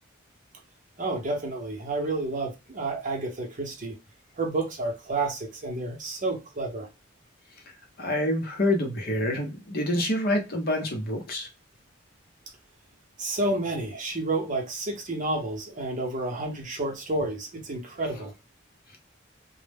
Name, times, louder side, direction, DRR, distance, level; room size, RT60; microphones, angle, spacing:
voice 1, 1.0-4.0 4.4-6.9 13.2-18.3, right 2 dB, 40° right, 0.7 m, -30 dB
voice 2, 8.0-11.5, left 1 dB, 50° left, 0.7 m, -27 dB
2.1 x 2.0 x 3.3 m
head